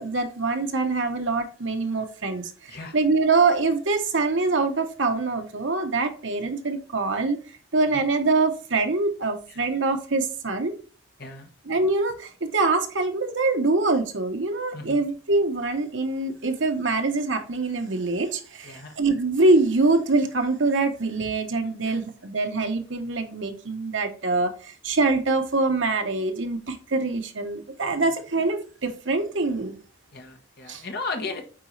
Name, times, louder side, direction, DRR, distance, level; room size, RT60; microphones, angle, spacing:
voice 1, 0.0-7.4 7.7-10.7 11.7-29.7 30.7-30.8, right 3 dB, 70° right, 1.1 m, -24 dB
voice 2, 11.2-11.5 14.7-15.0 15.5-15.6 18.6-19.0 21.8-22.0 28.0-28.1 30.1-31.4, left 3 dB, 50° left, 1.2 m, -36 dB
8.8 x 4.0 x 3.3 m
head